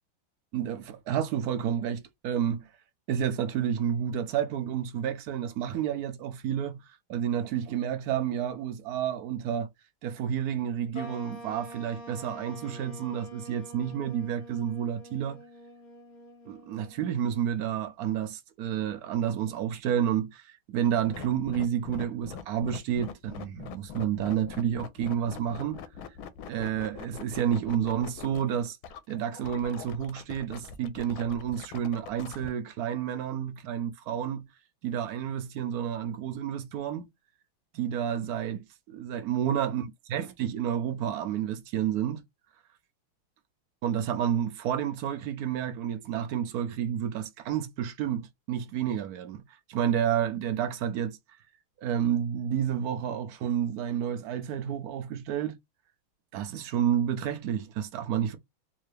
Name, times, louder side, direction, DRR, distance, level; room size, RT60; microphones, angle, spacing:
voice 1, 0.5-2.7 3.1-6.8 7.1-9.7 10.0-15.4 16.5-25.8 26.5-28.8 29.1-34.5 34.8-37.1 37.7-39.8 40.1-42.2 43.8-49.4 49.7-51.2 51.8-55.5 56.3-58.4, right 9 dB, 75° right, 0.9 m, -30 dB
sound 1, 10.9-17.6, equal, 70° left, 0.6 m, -46 dB
sound 2, 20.9-32.5, left 8 dB, 90° left, 1.4 m, -43 dB
3.7 x 2.7 x 3.2 m
omnidirectional pair, 2.2 m